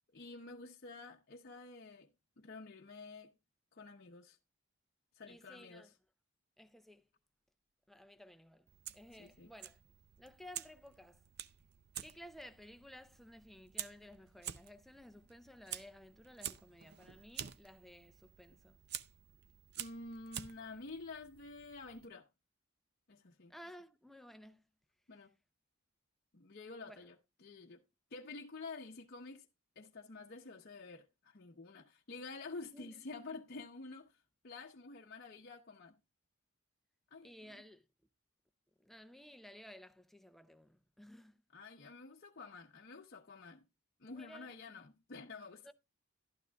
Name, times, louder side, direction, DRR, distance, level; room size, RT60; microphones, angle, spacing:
voice 1, 0.1-2.1 2.4-3.3 3.7-4.4 5.1-5.9 9.2-9.5 19.8-22.3 23.1-23.5 25.1-25.3 26.3-27.1 27.4-27.8 28.1-29.5 29.8-36.0 37.1-37.6 41.5-43.6 44.0-45.7, left 3 dB, 50° left, 0.8 m, -50 dB
voice 2, 5.3-5.9 6.6-7.1 7.9-9.8 10.2-11.2 12.0-18.8 23.5-24.6 26.8-27.1 32.7-33.0 37.2-37.8 38.8-41.4 44.1-44.5 45.6-45.7, equal, ahead, 0.5 m, -55 dB
Fire, 8.7-22.1, right 11 dB, 50° right, 0.5 m, -49 dB
12.0 x 12.0 x 2.3 m
head